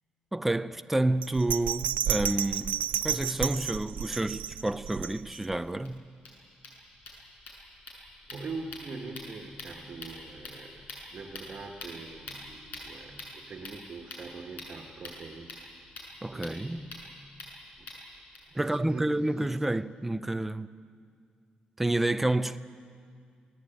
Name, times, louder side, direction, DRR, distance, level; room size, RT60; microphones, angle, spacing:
voice 1, 0.3-6.0 16.2-16.9 18.5-20.7 21.8-22.6, right 1 dB, 5° right, 0.5 m, -29 dB
Bell, 1.2-5.6 6.0-6.1, right 10 dB, 75° right, 0.7 m, -31 dB
sound 1, 5.1-5.2 5.5-5.6 5.8-5.9 6.1-18.4, left 2 dB, 65° left, 7.6 m, -46 dB
voice 2, 8.2-15.8 16.3-17.0 17.8-17.9 18.5-19.6, right 3 dB, 35° right, 1.6 m, -43 dB
28.5 x 19.0 x 9.1 m
wide cardioid pair, 180°, 3 cm